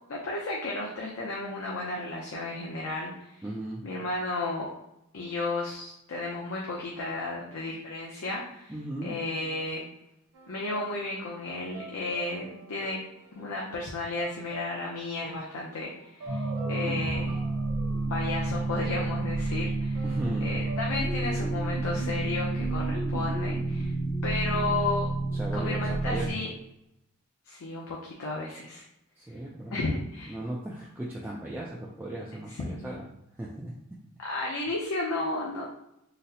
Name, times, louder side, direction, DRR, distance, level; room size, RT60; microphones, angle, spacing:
voice 1, 0.1-3.4 3.8-4.7 5.1-8.7 9.0-9.8 10.5-13.0 13.4-17.4 18.1-20.0 20.4-23.9 24.2-25.1 25.5-26.5 27.5-28.8 29.7-30.3 32.6-32.9 34.2-35.7, left 2 dB, 75° left, -3 dB, 0.5 m, -33 dB
voice 2, 3.4-3.8 8.7-9.2 20.0-20.7 25.3-26.4 29.2-29.8 30.3-33.1 33.3-34.0, right 1 dB, 10° right, -4 dB, 0.3 m, -37 dB
sound 1, 10.3-19.2 20.0-21.1, right 4 dB, 85° right, 0.5 m, -48 dB
sound 2, 16.3-26.3, right 2 dB, 20° left, 0.8 m, -30 dB
3.9 x 2.0 x 2.7 m, 0.83 s
head